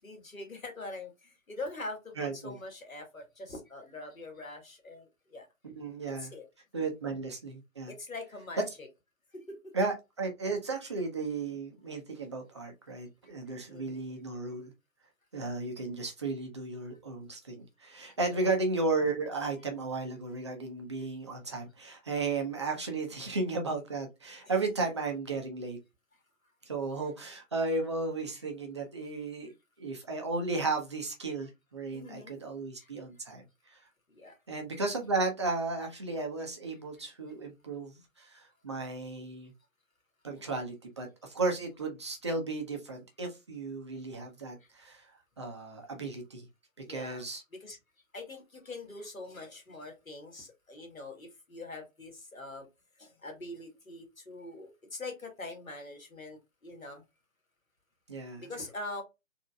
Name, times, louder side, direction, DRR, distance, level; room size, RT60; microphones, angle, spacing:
voice 1, 0.0-5.5 6.2-6.4 7.9-8.9 9.3-9.7 13.7-14.0 18.0-18.4 31.9-32.4 32.8-32.9 34.1-34.4 44.6-44.7 46.9-47.8 48.1-52.7 53.0-57.0 58.4-59.0, left 2 dB, 80° left, 1.6 m, -43 dB
voice 2, 2.2-2.5 5.6-6.3 6.7-7.9 9.7-14.7 15.3-25.8 26.7-29.5 29.8-33.4 33.7-33.8 34.5-39.5 40.2-45.1 45.4-46.5 46.9-47.4 58.1-58.4, right 3 dB, 20° right, 0.5 m, -34 dB
4.0 x 2.5 x 2.2 m
figure-of-eight pair, 135°, 41 cm